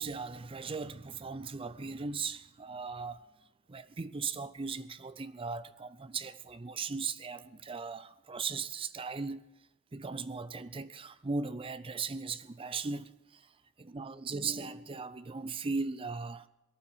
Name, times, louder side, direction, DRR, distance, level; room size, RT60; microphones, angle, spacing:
voice 1, 0.0-3.2 3.7-9.5 9.9-13.1 13.8-16.4, right 4 dB, 25° right, 0.5 m, -38 dB
18.5 x 12.0 x 5.5 m
head